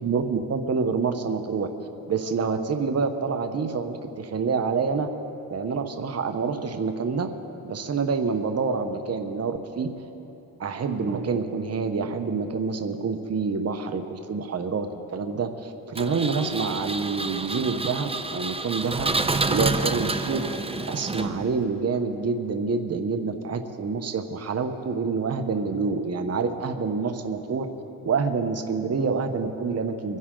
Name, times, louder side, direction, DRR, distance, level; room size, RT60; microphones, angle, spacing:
voice 1, 0.0-1.7 2.1-5.1 5.5-7.3 7.6-9.9 10.6-19.1 19.5-20.5 20.9-27.7 28.0-30.2, right 5 dB, 40° right, 7 dB, 1.1 m, -27 dB
Engine, 16.0-21.6, right 3 dB, 15° right, 0.8 m, -28 dB
24.5 x 11.0 x 3.9 m, 3.0 s
cardioid pair, 75°, 39 cm